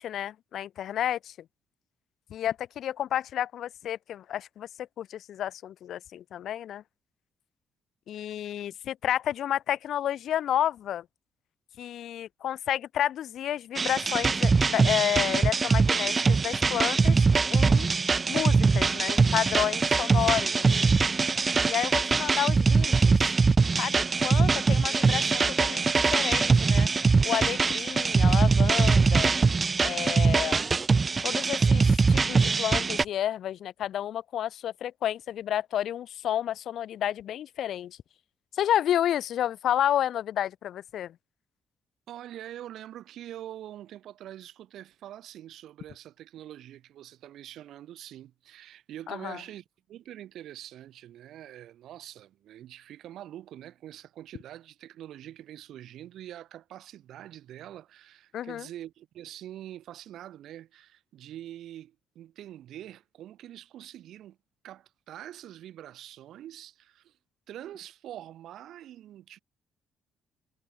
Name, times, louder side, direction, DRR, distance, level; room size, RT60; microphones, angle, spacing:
voice 1, 0.0-1.3 2.3-4.7 5.0-6.8 8.1-11.0 11.8-17.2 17.5-17.9 18.3-20.9 21.7-23.3 23.8-26.9 27.2-29.3 29.8-30.6 31.2-38.0 38.5-41.1 49.1-49.4 58.3-58.7, left 11 dB, 70° left, 0.7 m, -31 dB
sound 1, 13.8-33.0, right 4 dB, 30° right, 0.4 m, -23 dB
voice 2, 42.1-64.4 64.6-67.2 67.5-69.4, right 12 dB, 75° right, 2.2 m, -45 dB
cardioid pair, 90°, 0 cm